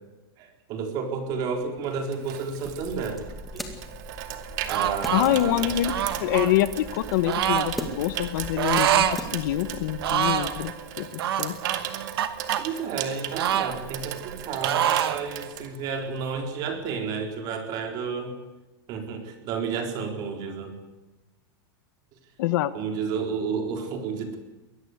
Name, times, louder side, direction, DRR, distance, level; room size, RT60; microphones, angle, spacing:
voice 1, 0.4-3.2 3.5-3.7 4.7-5.7 12.6-18.3 18.9-20.7 22.7-24.4, right 5 dB, 30° right, 4 dB, 4.3 m, -31 dB
Water tap faucet / Sink (filling or washing), 1.4-16.4 16.7-16.9, right 11 dB, 50° right, 2.4 m, -37 dB
sound 1, 2.6-10.7, equal, ahead, 2.1 m, -40 dB
sound 2, 4.7-5.3 5.8-6.5 7.3-7.7 8.6-9.2 9.5-9.6 10.0-10.5 11.2-12.6 13.4-14.4 14.6-15.2, right 10 dB, 75° right, 2.0 m, -25 dB
voice 2, 5.1-5.9 6.2-11.6 22.4-22.7, left 13 dB, 50° left, 13 dB, 1.2 m, -26 dB
22.5 x 18.5 x 8.2 m, 1.1 s
supercardioid pair, 170°, 13 cm